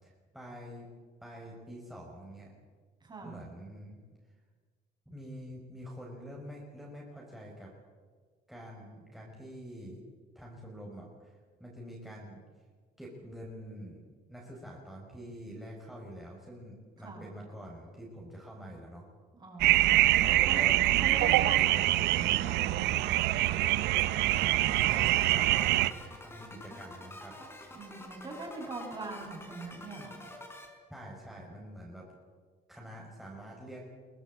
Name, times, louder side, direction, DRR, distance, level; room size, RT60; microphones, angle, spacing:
voice 1, 0.0-0.9 1.2-2.5 3.2-4.0 5.1-7.7 8.5-10.0 10.3-12.4 13.0-14.0 14.3-19.1 20.0-20.8 21.2-21.3 24.4-27.3 30.9-32.1 32.7-33.8, equal, ahead, -3 dB, 6.1 m, -46 dB
voice 2, 3.0-3.4 17.0-17.2 19.3-20.7 21.0-23.1 27.7-30.2, right 3 dB, 25° right, 0 dB, 7.7 m, -42 dB
sound 1, 19.6-25.9, right 16 dB, 85° right, 0.9 m, -25 dB
sound 2, 24.3-30.7, left 1 dB, 15° left, 5.2 m, -48 dB
23.5 x 18.0 x 8.7 m, 1.5 s
cardioid pair, 110°, 17 cm